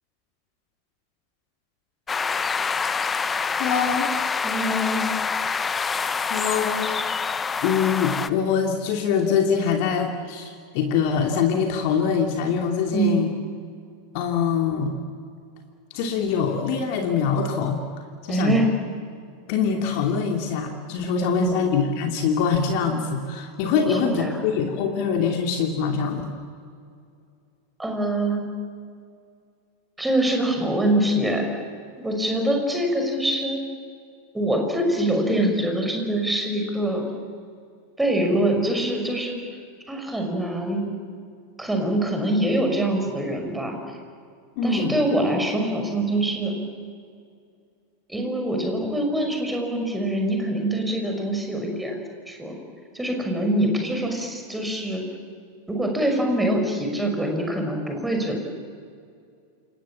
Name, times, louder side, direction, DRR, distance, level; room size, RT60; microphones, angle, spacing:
sound 1, 2.1-8.3, left 5 dB, 15° left, 1.0 m, -26 dB
voice 1, 3.6-4.1 6.2-6.9 7.6-13.3 14.1-14.9 15.9-17.8 18.2-18.6 19.5-26.3 44.6-45.0, left 6 dB, 45° left, 2 dB, 2.8 m, -24 dB
voice 2, 4.4-5.1 12.9-13.2 18.3-18.7 21.3-21.6 23.7-24.4 27.8-28.5 30.0-31.5 32.0-33.6 34.3-37.1 38.0-39.3 39.9-40.8 41.6-44.0 44.6-46.5 48.1-52.0 52.3-52.6 52.9-55.0 55.7-58.4, right 1 dB, 5° right, 3 dB, 6.2 m, -24 dB
28.5 x 27.5 x 7.4 m, 2.3 s
figure-of-eight pair, 90°, 0 cm